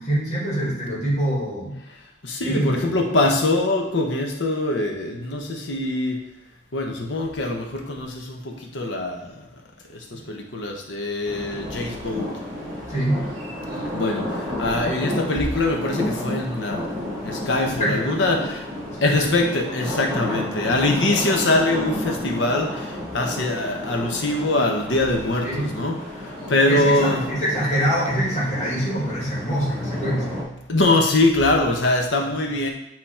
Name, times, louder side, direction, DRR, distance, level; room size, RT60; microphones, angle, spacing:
voice 1, 0.0-1.8 2.4-2.9 12.9-13.2 17.6-18.2 19.0-19.3 20.3-20.4 25.4-25.7 26.7-30.4, equal, 40° left, -5 dB, 1.7 m, -24 dB
voice 2, 2.2-6.1 6.7-8.4 8.7-9.2 10.3-12.3 13.9-14.2 14.6-16.8 17.2-18.6 19.0-22.7 23.1-25.9 26.5-27.3 29.8-30.3 30.7-32.7, left 2 dB, 80° left, 2 dB, 1.0 m, -23 dB
sound 1, 11.2-30.4, left 1 dB, 15° right, 2.3 m, -32 dB
7.8 x 3.1 x 4.3 m, 0.87 s
head